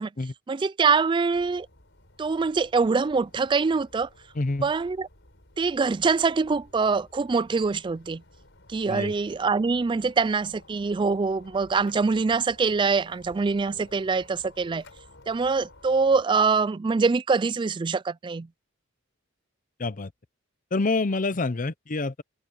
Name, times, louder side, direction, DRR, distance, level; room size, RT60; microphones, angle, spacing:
voice 1, 0.5-1.7 2.2-4.1 4.6-5.1 5.6-8.2 8.7-14.8 15.3-18.5, right 4 dB, 25° right, 0.3 m, -24 dB
sound 1, 1.3-16.2, left 2 dB, 60° left, 6.5 m, -53 dB
voice 2, 4.4-4.7 8.9-9.1 19.8-20.1 20.7-22.2, left 3 dB, 40° left, 0.7 m, -27 dB
head